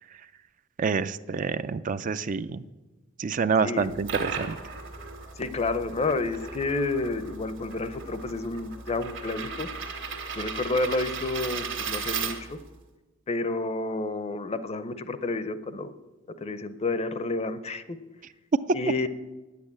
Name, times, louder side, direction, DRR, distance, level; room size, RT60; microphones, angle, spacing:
voice 1, 0.8-2.6 3.2-4.6, right 5 dB, 40° right, 12 dB, 0.4 m, -27 dB
sound 1, 3.8-12.8, right 5 dB, 65° right, 1.8 m, -36 dB
voice 2, 5.4-9.7 10.4-12.6 13.3-15.9 16.4-18.0 18.7-19.1, left 2 dB, 35° left, 12 dB, 0.6 m, -30 dB
10.0 x 8.4 x 8.7 m, 1.2 s
head